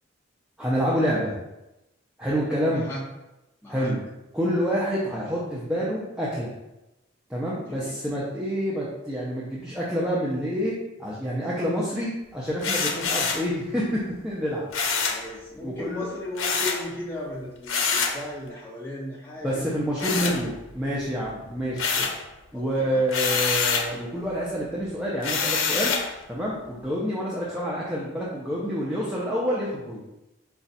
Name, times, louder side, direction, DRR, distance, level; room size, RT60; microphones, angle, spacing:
voice 1, 0.6-1.3 2.2-2.9 3.7-4.0 4.3-6.5 7.3-14.6 15.6-16.1 19.4-21.9 22.5-25.9 26.3-30.1, equal, 5° right, -7 dB, 0.5 m, -27 dB
voice 2, 2.7-3.1 3.6-3.9 7.6-8.0 15.1-20.4 21.7-22.1 22.5-23.1 27.4-27.6, left 1 dB, 10° left, -7 dB, 1.3 m, -37 dB
sound 1, 12.6-13.5 14.7-15.2 16.4-16.8 17.7-18.2 20.0-20.8 21.2-22.2 23.1-23.9 25.2-26.1, left 5 dB, 85° left, 0.6 m, -26 dB
4.9 x 2.3 x 4.1 m, 0.97 s
head